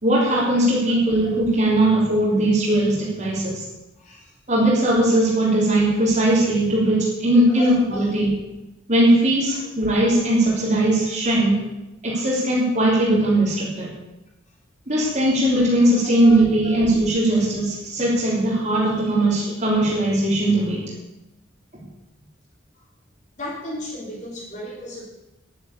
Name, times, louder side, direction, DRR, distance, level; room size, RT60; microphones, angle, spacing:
voice 1, 0.0-3.6 4.5-8.4 8.9-11.6 12.0-13.9 14.9-20.8, right 1 dB, 40° right, -7 dB, 3.4 m, -19 dB
voice 2, 4.0-4.3 7.5-8.0 10.8-10.9 16.2-16.9 23.4-25.0, left 1 dB, 40° left, -4 dB, 3.4 m, -35 dB
10.5 x 9.7 x 8.2 m, 0.96 s
head